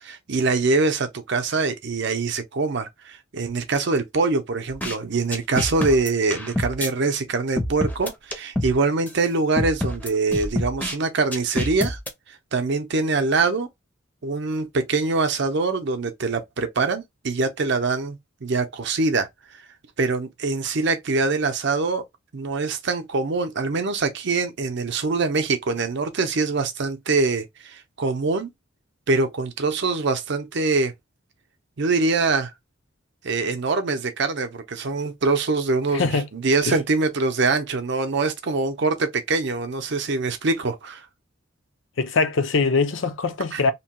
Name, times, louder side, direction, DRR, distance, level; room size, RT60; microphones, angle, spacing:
voice 1, 0.0-12.0 12.5-13.7 14.2-19.3 20.0-22.0 22.3-28.5 29.1-30.9 31.8-32.5 33.2-41.0 43.5-43.6, right 3 dB, 60° right, 0.6 m, -24 dB
sound 1, 4.7-5.0 5.3-6.9 7.6-8.8 9.1-9.2 9.6-11.0 11.3-12.1, left 1 dB, 10° left, 0.6 m, -27 dB
voice 2, 35.9-36.3 36.6-36.8 42.0-43.7, left 4 dB, 65° left, 0.5 m, -22 dB
2.9 x 2.2 x 2.8 m
head